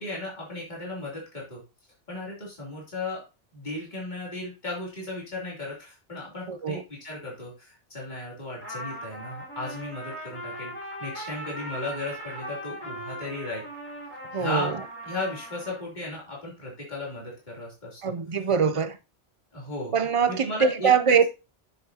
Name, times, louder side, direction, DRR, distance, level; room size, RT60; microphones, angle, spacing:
voice 1, 0.0-1.6 2.1-3.2 3.5-10.7 11.0-13.7 14.3-14.8 15.0-18.1 19.5-20.0 20.3-20.9, left 2 dB, 40° left, 3.5 m, -35 dB
voice 2, 6.5-6.8 14.3-14.8 18.0-19.0 19.9-21.2, right 6 dB, 40° right, 0.5 m, -23 dB
Trumpet, 8.6-15.8, equal, 10° left, 4.7 m, -39 dB
9.4 x 7.3 x 2.9 m
omnidirectional pair, 1.2 m